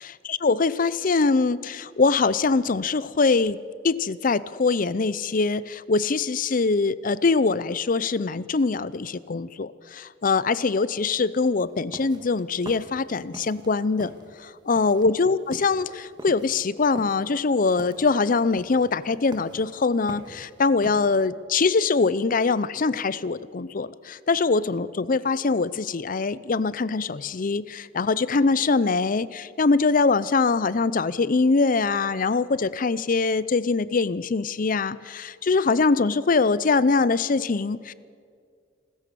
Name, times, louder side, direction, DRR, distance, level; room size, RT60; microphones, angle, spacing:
voice 1, 0.0-3.6 3.8-14.1 14.4-37.9, left 4 dB, 45° left, 18 dB, 0.6 m, -23 dB
sound 1, 11.7-13.7 14.0-21.2, right 1 dB, 25° right, 1.6 m, -42 dB
28.0 x 13.5 x 6.9 m, 2.1 s
head